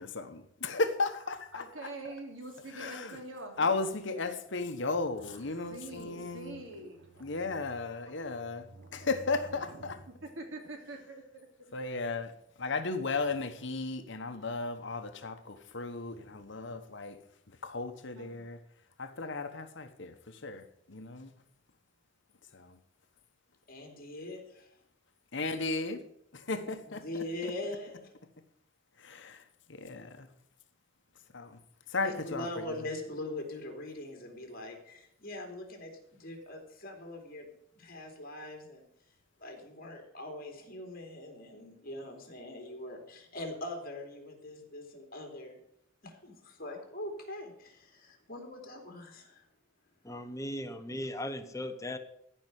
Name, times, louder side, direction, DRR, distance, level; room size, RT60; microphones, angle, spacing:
voice 1, 0.0-1.6 2.8-3.2 3.6-6.6 7.2-8.6 8.9-9.9 11.7-12.3 12.6-17.2 17.6-18.6 19.0-21.3 22.5-22.8 25.3-26.0 26.3-27.0 29.0-29.4 29.8-30.3 31.3-31.6 31.9-32.5, left 3 dB, 65° left, 1.2 m, -35 dB
voice 2, 1.5-3.6 5.2-7.7 8.1-8.2 8.4-11.7 16.1-16.3 18.1-18.4, right 2 dB, 85° right, 3.0 m, -46 dB
voice 3, 23.7-24.7 26.5-28.1 32.0-38.8 39.4-45.6 46.0-49.4, left 1 dB, 50° left, 3.2 m, -42 dB
voice 4, 50.0-52.0, left 1 dB, 15° left, 1.1 m, -37 dB
14.5 x 5.6 x 9.3 m
head